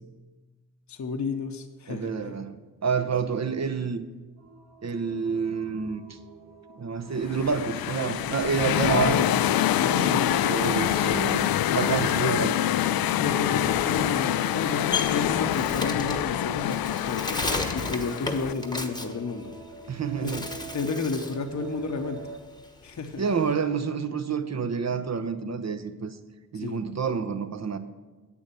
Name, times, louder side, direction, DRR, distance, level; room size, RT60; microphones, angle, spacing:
voice 1, 0.9-2.4 8.8-10.4 11.9-12.5 13.2-19.5 20.2-20.4 20.7-22.3 22.8-23.2 26.5-26.8, left 4 dB, 50° left, 0.9 m, -32 dB
voice 2, 1.9-2.5 2.8-4.0 4.8-6.2 6.7-9.2 10.0-12.5 14.0-14.2 19.9-20.5 23.2-26.2 26.5-27.8, right 6 dB, 45° right, 0.9 m, -28 dB
sound 1, 4.4-22.4, right 2 dB, 80° right, 1.3 m, -44 dB
sound 2, 7.2-18.5, left 12 dB, 65° left, 0.5 m, -26 dB
Bird, 14.4-19.9 20.2-21.4 21.8-23.5, left 3 dB, 10° left, 1.1 m, -34 dB
8.2 x 7.1 x 6.8 m
supercardioid pair, 45°, 38 cm